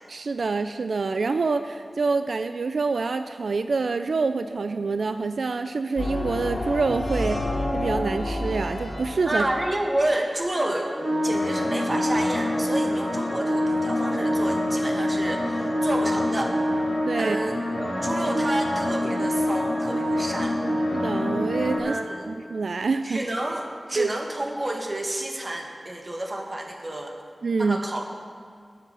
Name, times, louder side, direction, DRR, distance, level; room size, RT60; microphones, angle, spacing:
voice 1, 0.1-7.5 7.7-9.5 17.1-17.4 20.9-22.0 22.3-23.2 23.9-24.1 27.4-27.8, right 4 dB, 90° right, 9 dB, 0.4 m, -26 dB
sound 1, 6.0-9.8 10.4-21.8, left 1 dB, 70° left, 5.0 m, -26 dB
voice 2, 9.3-10.9 11.2-16.6 17.2-20.6 21.8-22.3 23.0-27.2 27.6-28.0, right 1 dB, 35° right, 2 dB, 1.9 m, -30 dB
20.0 x 7.5 x 7.0 m, 2.1 s
wide cardioid pair, 90°, 0 cm